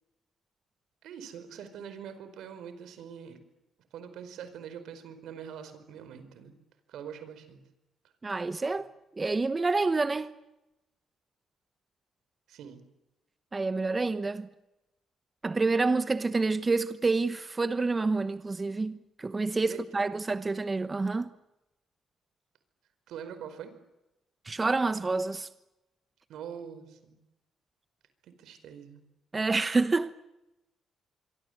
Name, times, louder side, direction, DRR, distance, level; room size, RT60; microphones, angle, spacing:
voice 1, 1.0-3.4 3.9-6.5 6.9-7.6 12.5-12.8 19.7-19.8 23.1-23.7 26.3-27.2 28.2-29.0, right 8 dB, 85° right, 4.8 m, -44 dB
voice 2, 8.2-8.9 9.2-10.3 13.5-14.5 15.4-21.3 24.4-25.5 29.3-30.1, right 3 dB, 25° right, 1.1 m, -28 dB
25.5 x 24.5 x 8.0 m
cardioid pair, 100°, 0 cm